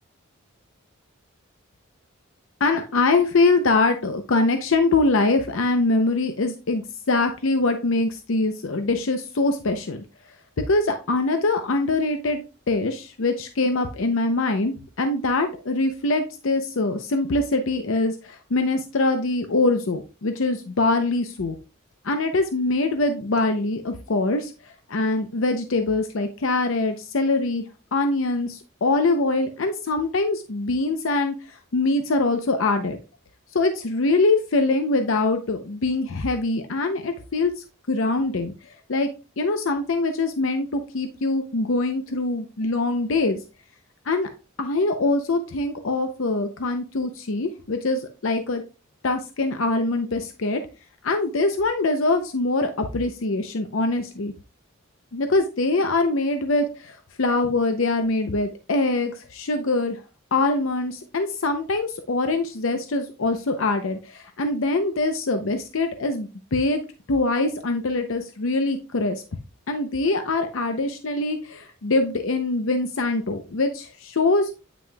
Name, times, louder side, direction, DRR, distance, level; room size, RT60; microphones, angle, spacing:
voice 1, 2.6-6.8 7.1-10.0 10.7-21.5 22.0-24.5 24.9-27.6 27.9-33.0 33.5-37.5 37.9-38.5 38.9-39.1 39.4-43.4 44.1-44.3 44.6-48.6 49.0-50.6 51.0-54.3 55.1-60.0 60.3-66.8 67.1-69.2 69.7-74.5, left 2 dB, 75° left, 6 dB, 0.7 m, -23 dB
9.1 x 6.0 x 2.3 m, 0.32 s
head